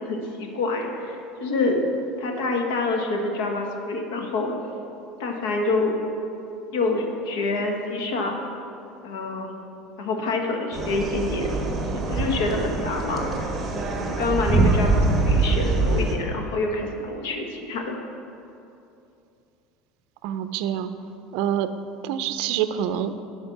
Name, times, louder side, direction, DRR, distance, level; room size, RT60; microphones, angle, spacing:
voice 1, 0.0-1.8 2.2-4.5 5.2-5.9 6.7-8.4 9.0-9.6 10.0-11.5 11.9-13.3 14.0-18.0, left 3 dB, 85° left, 2 dB, 1.2 m, -27 dB
sound 1, 10.7-16.1, right 2 dB, 20° right, 1.0 m, -23 dB
voice 2, 20.2-20.9 21.3-21.7 22.0-23.1, right 10 dB, 65° right, 11 dB, 0.4 m, -26 dB
11.0 x 4.7 x 5.8 m, 2.7 s
cardioid pair, 155°, 0 cm